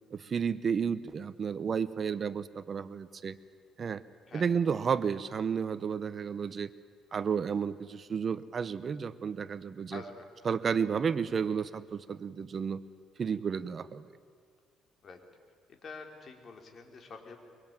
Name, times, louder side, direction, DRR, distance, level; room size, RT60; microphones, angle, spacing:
voice 1, 0.1-3.4 3.8-4.0 4.3-6.7 7.1-10.0 10.4-12.8 13.2-14.0, right 6 dB, 40° right, 15 dB, 0.8 m, -32 dB
voice 2, 9.9-10.2 15.0-15.2 15.8-17.4, left 4 dB, 45° left, 4 dB, 3.8 m, -46 dB
24.0 x 23.5 x 9.0 m, 2.1 s
cardioid pair, 115°, 0 cm